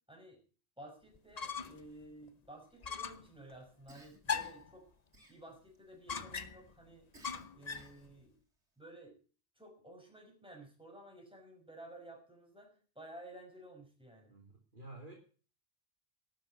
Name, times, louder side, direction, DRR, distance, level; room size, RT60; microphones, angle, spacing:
voice 1, 0.1-0.4 0.8-4.9 5.3-7.1 7.5-8.4 8.8-9.2 9.6-14.3, right 1 dB, 5° right, 1 dB, 5.9 m, -54 dB
sound 1, 1.2-1.9 2.2-2.3 2.8-3.3 4.3-4.7 6.1-6.7 7.2-7.9, left 6 dB, 40° left, 1.0 m, -39 dB
Cough, 3.9-4.7 5.1-5.8 7.1-8.1, right 1 dB, 80° right, 3.7 m, -60 dB
voice 2, 14.3-15.1, right 2 dB, 45° right, 0 dB, 3.1 m, -51 dB
12.5 x 9.0 x 8.4 m, 0.40 s
omnidirectional pair, 1.2 m